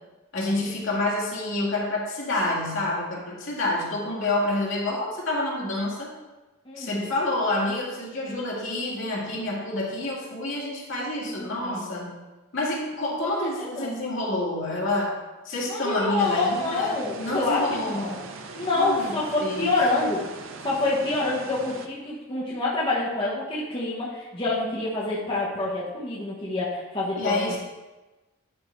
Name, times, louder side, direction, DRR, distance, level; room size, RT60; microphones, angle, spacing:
voice 1, 0.3-6.1 6.8-12.2 12.5-15.2 15.4-18.1 18.7-19.1 19.4-19.7 27.2-27.6, left 2 dB, 60° left, -5 dB, 2.3 m, -28 dB
voice 2, 6.6-7.1 11.2-11.9 13.2-13.9 15.6-18.2 18.5-20.3 20.6-27.6, left 2 dB, 25° left, -7 dB, 1.3 m, -27 dB
sound 1, 16.2-21.9, right 4 dB, 70° right, 0.7 m, -41 dB
11.0 x 3.9 x 4.6 m, 1.1 s
head